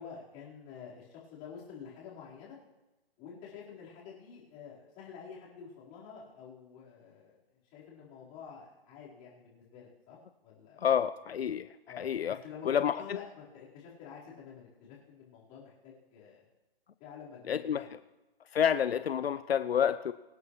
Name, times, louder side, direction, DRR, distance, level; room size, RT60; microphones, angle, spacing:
voice 1, 0.0-2.6 3.2-11.0 11.9-16.4 17.0-18.0, left 6 dB, 25° left, -6 dB, 4.5 m, -49 dB
voice 2, 10.8-11.7 12.0-12.4 12.6-13.2 17.5-17.8 18.5-20.1, left 8 dB, 80° left, 12 dB, 0.7 m, -29 dB
24.5 x 9.6 x 3.2 m, 1.1 s
hypercardioid pair, 155°, 30 cm